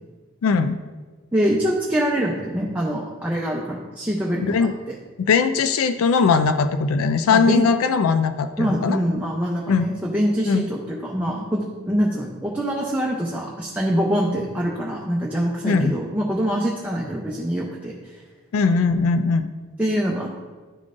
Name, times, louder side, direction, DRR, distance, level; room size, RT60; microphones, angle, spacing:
voice 1, 0.4-0.8 4.4-4.7 5.2-9.0 9.7-9.9 10.5-10.6 15.6-15.9 18.5-19.5, left 5 dB, 80° left, 10 dB, 0.3 m, -20 dB
voice 2, 1.3-4.9 7.3-7.7 8.6-18.2 19.8-20.4, equal, 10° right, -4 dB, 0.5 m, -24 dB
11.0 x 3.7 x 2.5 m, 1.4 s
head